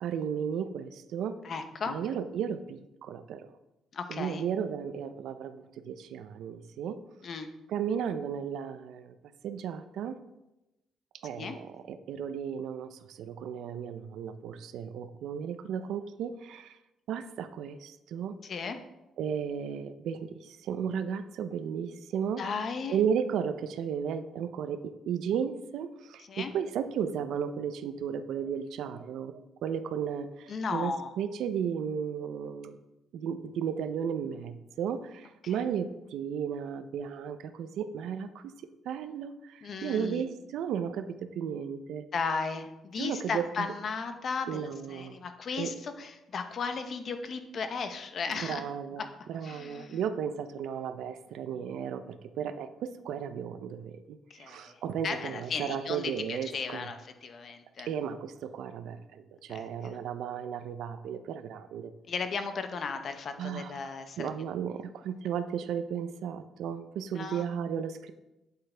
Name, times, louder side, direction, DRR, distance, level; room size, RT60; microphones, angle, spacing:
voice 1, 0.0-1.4 1.9-3.5 4.1-7.0 7.7-9.2 9.4-10.2 11.2-16.8 17.1-18.3 19.2-22.4 22.9-32.8 33.1-38.5 38.8-42.0 43.0-43.7 44.5-45.2 45.6-45.7 48.3-49.0 49.3-56.9 57.8-61.9 63.4-68.1, right 8 dB, 75° right, 10 dB, 0.5 m, -34 dB
voice 2, 1.4-2.0 3.9-4.4 7.2-7.5 11.4-11.6 18.4-18.8 22.4-23.0 26.3-26.5 30.5-31.1 35.4-35.6 39.6-40.2 42.1-44.6 44.9-48.6 49.0-49.1 49.4-50.0 54.3-57.9 59.5-60.0 62.1-64.3 67.1-67.5, left 5 dB, 40° left, 8 dB, 0.8 m, -35 dB
8.5 x 7.9 x 3.4 m, 0.95 s
cardioid pair, 160°, 0 cm